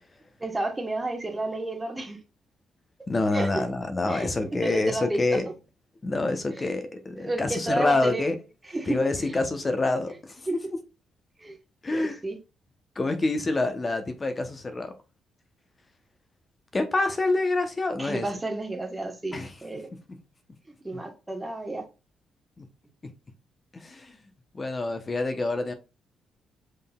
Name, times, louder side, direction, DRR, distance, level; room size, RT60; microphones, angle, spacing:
voice 1, 0.4-2.2 3.3-3.5 4.1-4.3 4.6-5.2 6.5-6.7 7.1-8.3 8.7-9.4 10.5-10.6 11.4-11.6 11.9-12.4 18.0-19.9 20.8-21.8, right 2 dB, 15° right, 1.2 m, -31 dB
voice 2, 3.1-5.5 6.0-8.4 8.9-10.4 10.7-10.8 11.8-12.2 13.0-14.9 16.7-18.2 19.3-19.5 19.9-20.2 20.9-21.0 22.6-22.7 23.0-23.1 23.7-24.2 24.5-25.7, left 2 dB, 30° left, 0.7 m, -27 dB
5.5 x 3.8 x 2.3 m
cardioid pair, 90°, 0 cm